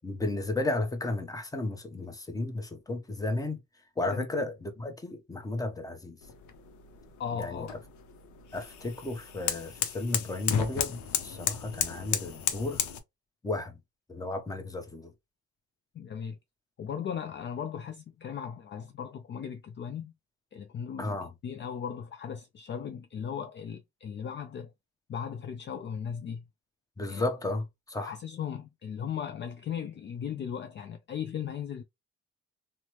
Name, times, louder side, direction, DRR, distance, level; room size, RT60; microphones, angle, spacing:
voice 1, 0.0-3.6 4.0-6.2 7.3-7.7 8.5-12.8 13.4-13.8 14.1-15.1 21.0-21.3 27.0-28.1, left 2 dB, 10° left, 0.7 m, -33 dB
sound 1, 6.2-13.0, left 9 dB, 75° left, 0.6 m, -34 dB
voice 2, 7.2-7.7 15.9-16.4 16.8-20.1 20.5-24.7 25.1-26.4 27.1-27.3 28.0-31.8, left 8 dB, 40° left, 0.4 m, -37 dB
3.1 x 2.1 x 2.9 m
cardioid pair, 90°, 30 cm